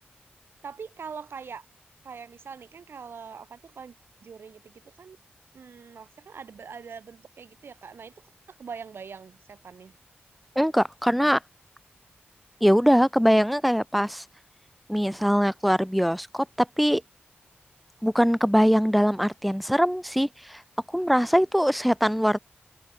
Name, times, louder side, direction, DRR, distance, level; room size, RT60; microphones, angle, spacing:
voice 1, 0.6-1.7 2.0-3.9 4.2-5.2 5.5-8.1 8.6-9.9, right 6 dB, 85° right, 3.7 m, -42 dB
voice 2, 10.6-11.4 12.6-14.2 14.9-17.0 18.0-20.6 20.9-22.4, equal, ahead, 0.3 m, -22 dB
wide cardioid pair, 70°, 4 cm